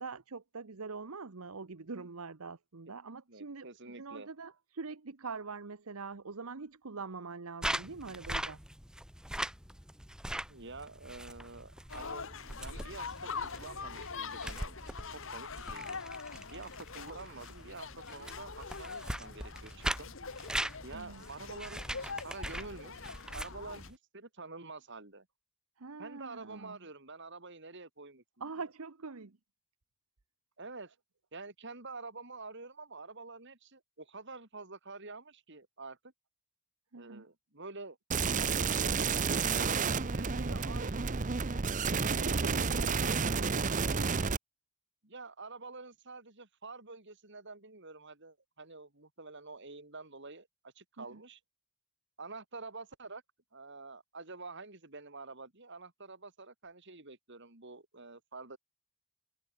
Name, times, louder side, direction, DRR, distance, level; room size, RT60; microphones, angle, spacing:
voice 1, 0.0-8.6 20.9-21.2 25.8-26.8 28.4-29.4 36.9-37.3 41.9-44.2 51.0-51.2, right 4 dB, 75° right, 1.0 m, -44 dB
voice 2, 3.3-4.3 10.5-16.0 16.5-20.1 20.8-23.0 23.3-25.3 26.0-28.2 30.6-30.9 31.3-36.0 36.9-38.0 38.3-41.1 43.0-43.4 45.0-51.4 52.2-53.2 53.5-58.6, right 3 dB, 55° right, 3.2 m, -48 dB
sound 1, 7.6-23.9, right 1 dB, 5° right, 1.5 m, -41 dB
sound 2, 11.9-23.9, left 5 dB, 60° left, 1.5 m, -44 dB
sound 3, 38.1-44.4, right 5 dB, 35° right, 0.7 m, -30 dB
head